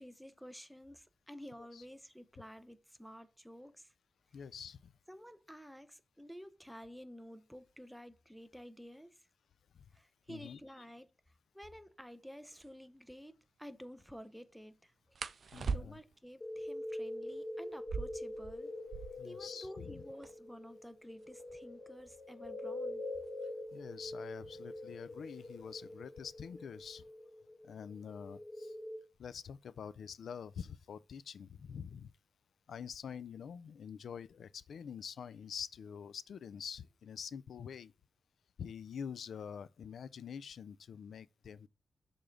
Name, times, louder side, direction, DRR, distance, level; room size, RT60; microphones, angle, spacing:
voice 1, 0.0-3.9 5.1-9.3 9.9-15.2 15.4-18.7 19.2-23.0, equal, ahead, 0.7 m, -52 dB
voice 2, 4.3-4.9 9.7-9.8 10.3-10.6 15.5-16.0 19.2-20.0 23.7-27.0 27.6-28.7 29.2-32.1 32.7-37.9 38.6-41.7, left 7 dB, 85° left, 0.4 m, -46 dB
sound 1, 12.0-12.1 12.5-12.7 15.1-16.3 17.7-19.4 19.7-19.8 20.0-20.6 21.2-23.7 24.8-25.1 25.5-25.9 26.3-27.0, right 5 dB, 55° right, 0.5 m, -42 dB
sound 2, 16.4-29.0, left 1 dB, 40° left, 1.3 m, -45 dB
6.8 x 3.7 x 6.3 m
wide cardioid pair, 120°, 0 cm